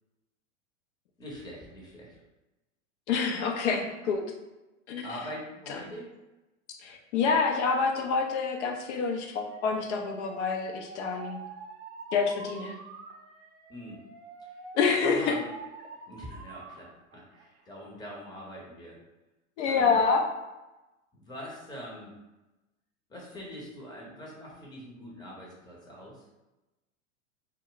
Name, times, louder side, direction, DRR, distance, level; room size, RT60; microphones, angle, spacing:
voice 1, 1.2-2.2 5.0-6.1 13.7-14.0 15.0-15.4 16.1-19.0 19.6-20.0 21.1-22.1 23.1-26.2, equal, 10° left, -4 dB, 0.8 m, -43 dB
voice 2, 3.1-4.2 4.9-5.1 6.8-11.4 12.1-12.7 14.7-15.4 19.6-20.2, left 5 dB, 60° left, 2 dB, 0.7 m, -27 dB
Alarm, 9.5-16.8 17.1-17.7, right 4 dB, 40° right, 0.6 m, -46 dB
2.2 x 2.1 x 3.8 m, 1.0 s
hypercardioid pair, 100°, 39 cm